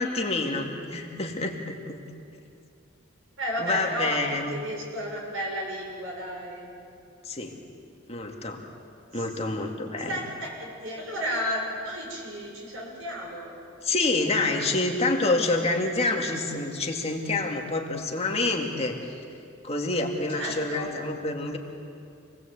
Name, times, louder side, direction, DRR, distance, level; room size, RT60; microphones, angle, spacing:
voice 1, 0.0-2.0 3.6-4.6 7.2-7.6 8.1-8.6 9.1-10.2 13.8-19.2 19.6-21.6, left 2 dB, 30° left, 1 dB, 2.2 m, -27 dB
voice 2, 3.4-4.2 4.5-6.7 9.1-9.2 10.1-13.6 20.4-20.9, equal, 75° right, -1 dB, 6.9 m, -33 dB
27.0 x 19.5 x 8.3 m, 2.5 s
head